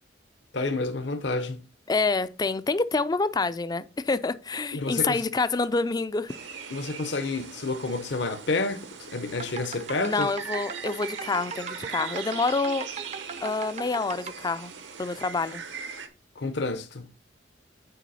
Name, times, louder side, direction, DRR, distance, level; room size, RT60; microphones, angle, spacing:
voice 1, 0.5-1.6 4.7-5.2 6.7-8.9 9.1-10.3 16.4-17.1, left 3 dB, 65° left, 0.8 m, -29 dB
voice 2, 1.9-6.3 10.0-12.9 13.4-14.7 15.0-15.6, left 3 dB, 20° left, 0.4 m, -27 dB
sound 1, 6.3-16.1, right 6 dB, 75° right, 1.1 m, -40 dB
sound 2, 9.3-14.3, right 5 dB, 35° right, 0.6 m, -39 dB
9.1 x 4.7 x 4.1 m
head